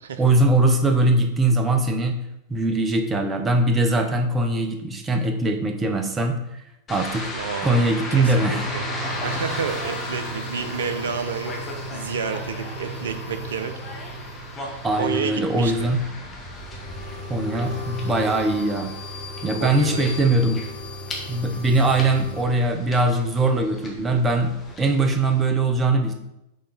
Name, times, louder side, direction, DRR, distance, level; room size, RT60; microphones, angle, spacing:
voice 1, 0.2-2.2 2.5-6.4 6.9-7.3 7.6-8.7 14.8-16.0 17.3-18.9 19.4-20.6 21.3-24.5 24.8-26.1, right 2 dB, 20° right, 5 dB, 0.8 m, -21 dB
sound 1, 6.9-25.5, left 1 dB, 20° left, 1.4 m, -37 dB
voice 2, 7.3-8.8 9.2-11.5 11.9-13.7 14.9-15.9 19.6-20.3, right 6 dB, 65° right, 8 dB, 0.6 m, -30 dB
sound 2, 7.8-22.4, equal, 65° left, 1.9 m, -36 dB
6.6 x 3.8 x 4.1 m, 0.86 s
figure-of-eight pair, 90°, 0 cm